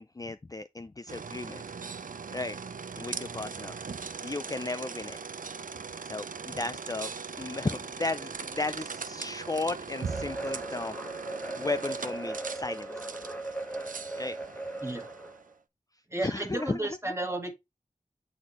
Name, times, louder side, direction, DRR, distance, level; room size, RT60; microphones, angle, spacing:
voice 1, 0.0-1.6 2.3-2.6 3.0-3.8 4.2-5.2 6.0-7.1 7.4-10.9 11.6-12.9 14.2-14.4 16.2-17.0, left 3 dB, 25° left, 0.3 m, -34 dB
sound 1, 1.1-15.5, right 5 dB, 70° right, 0.5 m, -40 dB
sound 2, 10.0-15.4, right 2 dB, 10° left, 1.2 m, -38 dB
voice 2, 16.1-17.5, right 2 dB, 20° right, 1.5 m, -33 dB
7.8 x 4.2 x 3.0 m
wide cardioid pair, 60°, 14 cm